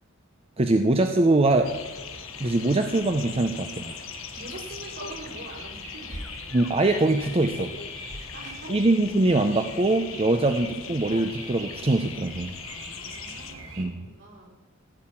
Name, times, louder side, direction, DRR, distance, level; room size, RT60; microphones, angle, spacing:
voice 1, 0.6-1.8 2.4-4.0 6.5-7.7 8.7-12.6 13.8-14.0, right 2 dB, 30° right, 6 dB, 0.7 m, -23 dB
sound 1, 1.4-13.9, right 2 dB, 85° right, 2.7 m, -43 dB
sound 2, 1.6-13.5, left 8 dB, 70° left, 1.1 m, -41 dB
voice 2, 4.3-6.4 8.1-8.8 10.2-10.5 12.6-14.5, right 2 dB, 60° right, -3 dB, 4.3 m, -44 dB
16.0 x 5.8 x 8.6 m, 1.2 s
head